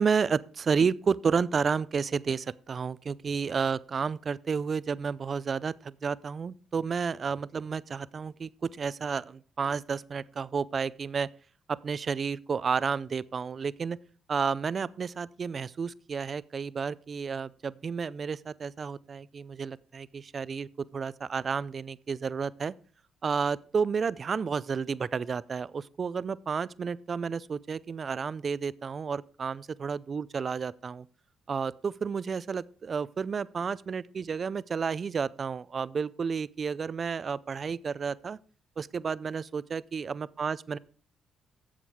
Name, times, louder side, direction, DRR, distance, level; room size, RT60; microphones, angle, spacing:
voice 1, 0.0-11.3 11.7-14.0 14.3-22.7 23.2-31.1 31.5-38.4 38.8-40.8, right 5 dB, 45° right, 0.5 m, -31 dB
11.0 x 7.5 x 4.8 m
cardioid pair, 90°, 0 cm